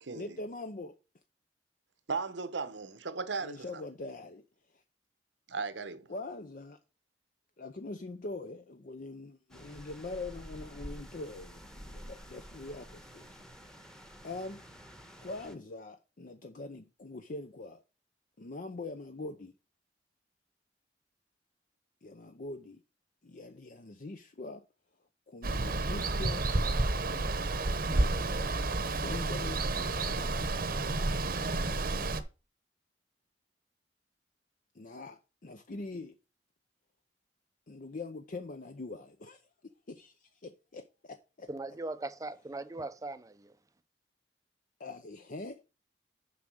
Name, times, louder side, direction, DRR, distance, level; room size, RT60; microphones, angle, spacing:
voice 1, 0.1-0.9 3.4-4.4 4.7-4.8 6.1-6.8 7.6-13.4 14.2-14.6 15.2-17.8 18.4-19.5 22.0-22.8 23.2-24.6 25.3-28.5 28.9-30.4 34.7-36.2 37.7-39.4 39.9-41.5 44.8-45.6, left 2 dB, 50° left, 0.6 m, -43 dB
voice 2, 2.1-3.8 5.5-6.1, right 4 dB, 90° right, 1.0 m, -36 dB
sound 1, 9.5-15.5, equal, 5° left, 1.1 m, -49 dB
Water, 25.4-32.2, right 2 dB, 55° right, 0.9 m, -30 dB
voice 3, 41.5-43.5, right 2 dB, 20° right, 0.5 m, -39 dB
7.1 x 5.2 x 6.2 m
head